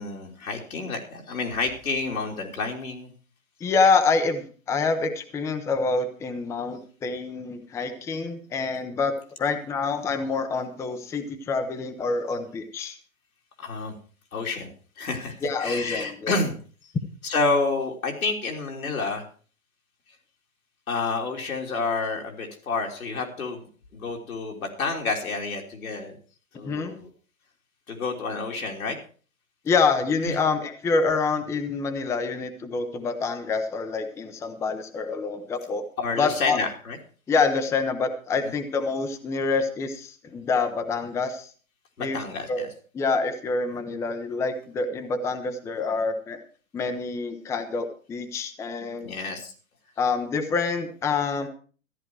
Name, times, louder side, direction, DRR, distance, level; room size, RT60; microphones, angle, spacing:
voice 1, 0.0-3.1 13.6-13.9 14.3-16.5 17.2-19.2 20.9-23.6 23.9-26.2 26.5-27.1 27.9-29.0 30.2-30.3 36.0-37.0 42.0-42.7 49.0-49.5, left 3 dB, 90° left, 0 dB, 3.4 m, -29 dB
voice 2, 3.6-13.0 15.4-16.4 26.6-26.9 29.6-35.9 36.2-36.6 37.3-41.5 42.0-42.2 42.5-42.6 42.9-46.4 46.7-49.1 50.0-51.5, left 4 dB, 5° left, 7 dB, 0.7 m, -26 dB
14.0 x 10.5 x 4.7 m, 0.40 s
hypercardioid pair, 145°, 41 cm